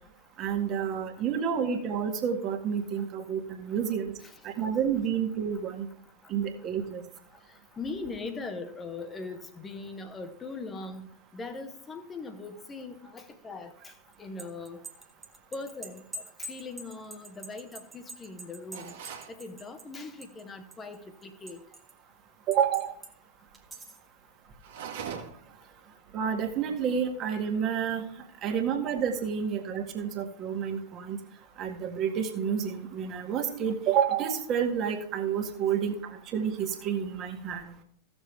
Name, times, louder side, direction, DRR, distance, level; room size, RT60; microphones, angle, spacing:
voice 1, 0.4-4.1 4.4-5.9 6.3-7.0 22.5-22.9 26.1-28.1 28.4-31.2 31.6-37.7, right 8 dB, 35° right, 4 dB, 1.9 m, -29 dB
voice 2, 7.5-11.1 11.3-13.9 14.2-14.8 15.5-18.9 19.3-21.6, left 3 dB, 20° left, 9 dB, 1.4 m, -40 dB
sound 1, 14.1-20.4 20.7-21.9 22.5-23.1 23.5-24.1, right 2 dB, 15° right, 1.5 m, -45 dB
sound 2, 18.7-19.4 24.6-25.5, right 7 dB, 55° right, 1.8 m, -40 dB
15.5 x 7.1 x 3.4 m, 0.63 s
figure-of-eight pair, 90°, 0 cm